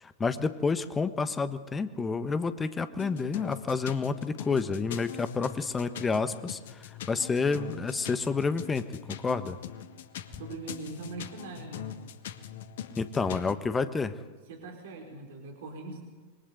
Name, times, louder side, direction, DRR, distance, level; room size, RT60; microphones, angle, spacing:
voice 1, 0.0-9.6 13.0-14.1, left 4 dB, 15° left, 12 dB, 1.4 m, -29 dB
sound 1, 3.0-13.5, left 9 dB, 55° left, 1.4 m, -42 dB
voice 2, 10.4-11.9 13.1-13.3 14.5-16.0, right 3 dB, 55° right, 4 dB, 4.6 m, -41 dB
27.0 x 23.0 x 8.2 m, 1.3 s
figure-of-eight pair, 90°, 0 cm